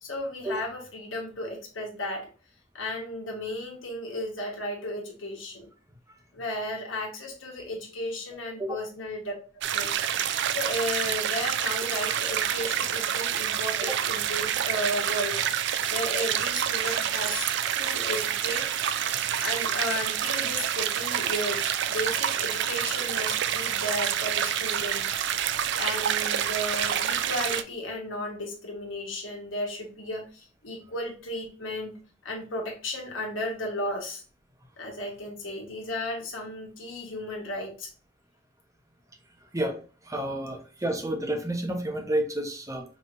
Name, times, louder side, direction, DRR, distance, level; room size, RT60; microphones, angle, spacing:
voice 1, 0.0-2.3 2.7-5.7 6.3-9.3 9.7-9.9 10.5-15.4 15.9-17.5 17.8-18.7 19.4-25.0 25.3-31.9 32.2-34.2 34.8-37.9, left 1 dB, 85° left, 0 dB, 1.3 m, -34 dB
sound 1, 9.6-27.6, right 9 dB, 65° right, 0.4 m, -28 dB
voice 2, 40.0-42.8, right 1 dB, 15° right, 4 dB, 0.8 m, -30 dB
5.3 x 3.1 x 2.6 m, 0.37 s
head